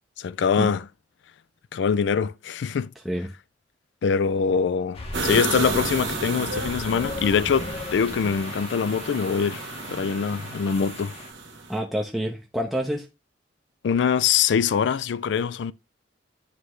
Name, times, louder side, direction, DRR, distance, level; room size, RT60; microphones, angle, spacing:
voice 1, 0.2-0.8 1.7-2.9 4.0-9.6 9.9-11.1 13.8-15.7, left 6 dB, 65° left, 0.3 m, -23 dB
sound 1, 4.9-11.3, left 2 dB, 30° left, 0.9 m, -38 dB
sound 2, 5.1-11.8, right 3 dB, 80° right, 1.3 m, -32 dB
voice 2, 11.7-13.1, equal, ahead, 0.6 m, -27 dB
9.8 x 3.3 x 3.1 m
head